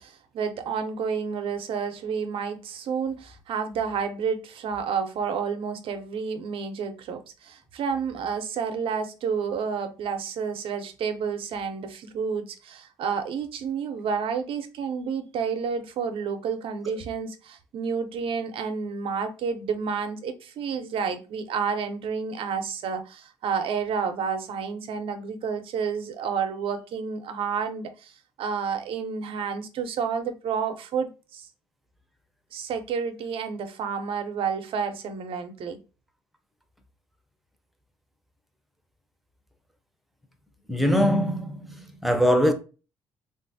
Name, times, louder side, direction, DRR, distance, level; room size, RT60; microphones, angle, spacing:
voice 1, 0.0-28.1 28.4-31.5 32.5-35.8, right 6 dB, 65° right, 0.6 m, -30 dB
voice 2, 40.7-42.5, equal, ahead, 0.7 m, -22 dB
3.1 x 2.5 x 2.7 m
supercardioid pair, 70°, 10 cm